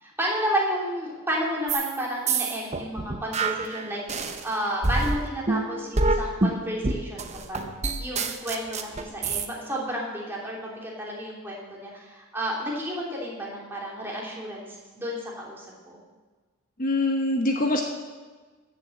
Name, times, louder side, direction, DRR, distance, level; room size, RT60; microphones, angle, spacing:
voice 1, 0.0-7.7 8.0-16.0, equal, 10° right, -4 dB, 3.0 m, -31 dB
sound 1, 1.7-2.0 2.3-4.4 4.8-9.5, right 3 dB, 30° right, 0.8 m, -26 dB
voice 2, 16.8-17.8, left 2 dB, 40° left, 3 dB, 1.0 m, -24 dB
14.5 x 6.9 x 7.7 m, 1.4 s
head